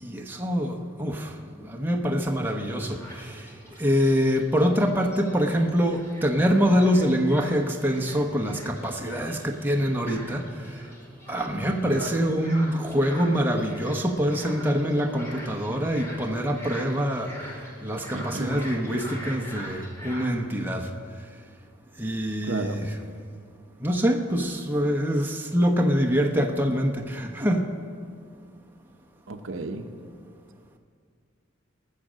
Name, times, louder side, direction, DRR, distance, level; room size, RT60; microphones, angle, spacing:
voice 1, 0.0-3.5 3.8-10.8 11.3-17.3 17.8-20.9 22.0-23.0 23.8-27.7, equal, 10° right, 2 dB, 0.9 m, -25 dB
sound 1, 2.4-20.2, equal, 15° left, 2.3 m, -44 dB
voice 2, 18.1-18.6 22.4-22.8 29.3-29.9, right 2 dB, 65° right, 7 dB, 0.8 m, -33 dB
19.0 x 6.5 x 7.4 m, 2.1 s
head